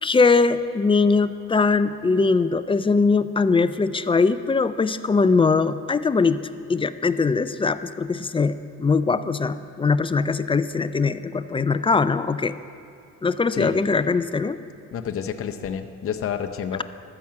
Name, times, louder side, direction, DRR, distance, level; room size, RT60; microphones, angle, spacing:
voice 1, 0.0-6.4 6.7-12.5 13.2-14.6, left 4 dB, 20° left, 13 dB, 0.3 m, -21 dB
voice 2, 14.9-16.8, left 8 dB, 45° left, 6 dB, 0.7 m, -29 dB
13.0 x 6.0 x 7.4 m, 2.5 s
cardioid pair, 90°, 30 cm